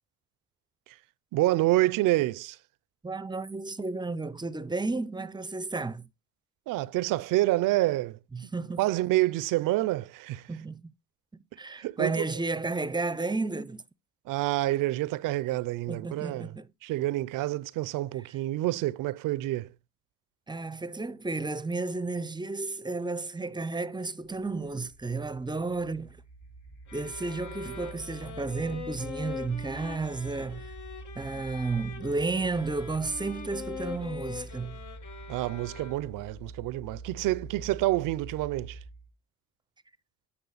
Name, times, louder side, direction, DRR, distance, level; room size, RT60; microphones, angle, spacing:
voice 1, 1.3-2.6 6.7-10.6 11.5-12.5 14.2-19.8 35.3-38.8, right 17 dB, 85° right, 0.5 m, -28 dB
voice 2, 3.0-6.1 8.5-8.8 10.5-10.7 11.3-13.8 15.9-16.6 20.5-26.2 26.9-30.7 31.2-34.8, right 3 dB, 15° right, 0.6 m, -32 dB
sound 1, 24.3-39.1, right 3 dB, 85° left, 2.8 m, -46 dB
sound 2, 26.9-36.3, left 6 dB, 65° left, 1.7 m, -43 dB
9.5 x 5.6 x 4.0 m
cardioid pair, 75°, 31 cm